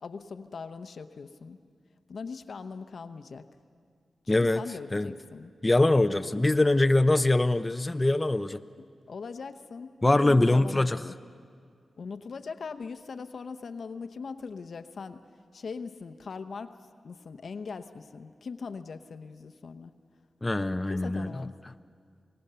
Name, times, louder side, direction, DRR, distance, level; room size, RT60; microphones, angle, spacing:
voice 1, 0.0-1.6 2.1-3.5 4.3-5.5 6.2-6.4 8.8-11.1 12.0-15.2 15.5-16.8 17.0-19.9 20.9-21.5, left 5 dB, 70° left, 9 dB, 0.9 m, -40 dB
voice 2, 4.3-4.6 4.9-5.1 5.6-8.6 10.0-11.0 20.4-21.3, left 2 dB, 20° left, 9 dB, 0.6 m, -23 dB
26.0 x 18.5 x 6.9 m, 2.1 s
cardioid pair, 55°, 0 cm